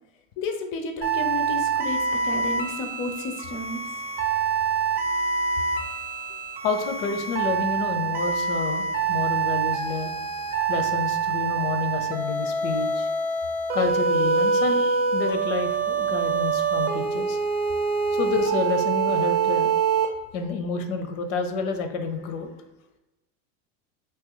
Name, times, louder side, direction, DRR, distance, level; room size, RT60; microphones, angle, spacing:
voice 1, 0.4-3.8, left 3 dB, 35° left, 5 dB, 0.5 m, -32 dB
sound 1, 1.0-20.1, right 5 dB, 25° right, 0.6 m, -25 dB
voice 2, 6.6-10.1 10.7-13.1 13.7-17.4 18.1-19.8 20.3-22.5, left 4 dB, 75° left, 7 dB, 0.7 m, -29 dB
3.0 x 2.7 x 3.7 m, 1.0 s
supercardioid pair, 125°, 39 cm